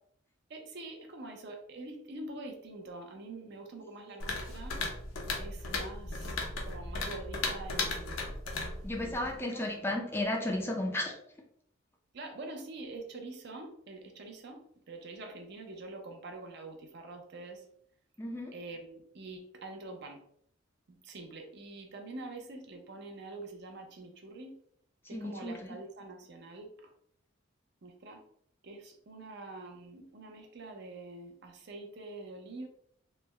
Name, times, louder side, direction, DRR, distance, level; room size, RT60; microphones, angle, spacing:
voice 1, 0.5-4.8 5.4-6.4 6.6-8.4 9.0-9.6 12.1-17.6 18.5-20.2 20.9-24.5 25.1-26.9 27.8-28.2 28.6-32.7, right 2 dB, 55° right, 3 dB, 0.6 m, -45 dB
sound 1, 4.2-9.4, left 3 dB, 80° left, 0.7 m, -36 dB
voice 2, 8.8-11.1 18.2-18.5 25.1-25.6, left 1 dB, 10° left, 1 dB, 0.4 m, -33 dB
3.3 x 2.0 x 3.3 m, 0.67 s
head